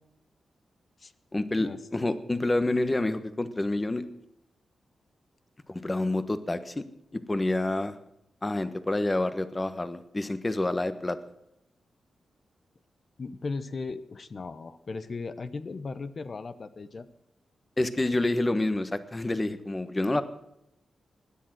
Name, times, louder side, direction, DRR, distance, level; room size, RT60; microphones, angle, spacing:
voice 1, 1.3-4.1 5.7-6.8 7.1-8.0 8.4-11.2 17.8-20.2, left 2 dB, 25° left, 12 dB, 1.3 m, -28 dB
voice 2, 13.2-17.1, left 4 dB, 50° left, 13 dB, 0.9 m, -37 dB
17.0 x 10.5 x 6.1 m, 0.81 s
cardioid pair, 75°, 0 cm